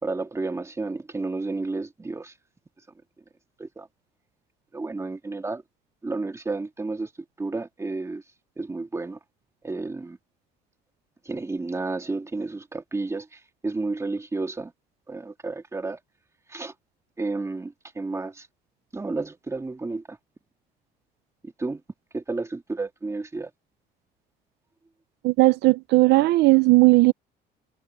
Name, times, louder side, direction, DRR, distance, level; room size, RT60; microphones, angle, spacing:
voice 1, 0.0-2.3 3.6-3.9 4.7-5.6 6.0-7.1 7.4-8.2 8.6-9.2 9.6-10.2 11.3-14.7 15.1-16.0 16.5-16.7 17.2-18.5 18.9-20.2 21.4-21.8 22.1-23.5, right 3 dB, 15° right, 2.2 m, -31 dB
voice 2, 25.2-27.1, right 20 dB, 80° right, 0.7 m, -17 dB
cardioid pair, 110°, 17 cm